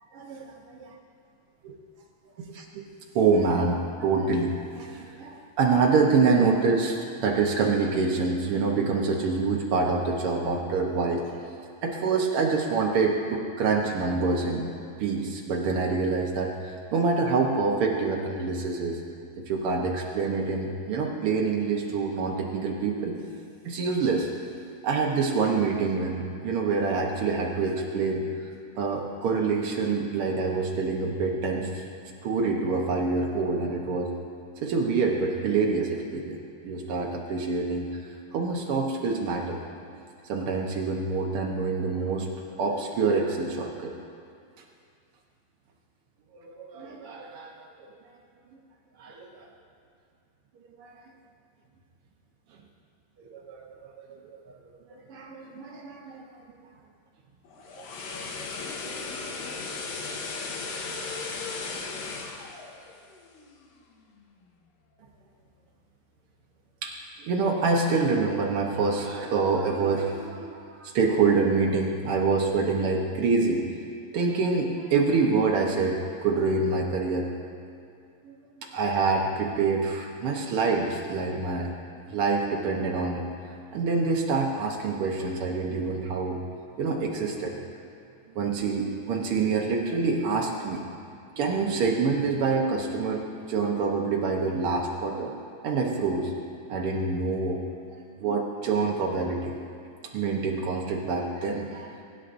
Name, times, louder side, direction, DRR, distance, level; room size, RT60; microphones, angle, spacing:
voice 1, 2.5-2.8 3.1-11.2 11.8-14.7 15.0-19.0 19.4-23.2 23.6-24.3 24.8-28.2 28.8-31.8 32.2-34.1 34.6-37.9 38.3-39.6 40.3-43.9 46.4-47.5 49.0-49.5 50.8-50.9 53.3-54.2 54.4-54.5 54.9-56.2 57.8-57.9 66.8-66.9 67.2-73.6 74.1-77.3 78.2-81.7 82.1-83.3 83.7-86.4 86.8-87.6 88.3-90.8 91.4-95.3 95.6-96.3 96.7-97.6 98.2-99.6 100.1-102.0, right 4 dB, 90° right, -1 dB, 1.2 m, -26 dB
sound 1, 57.5-63.7 64.0-64.2, left 4 dB, 80° left, 2.8 m, -36 dB
24.0 x 11.5 x 2.6 m, 2.4 s
omnidirectional pair, 4.0 m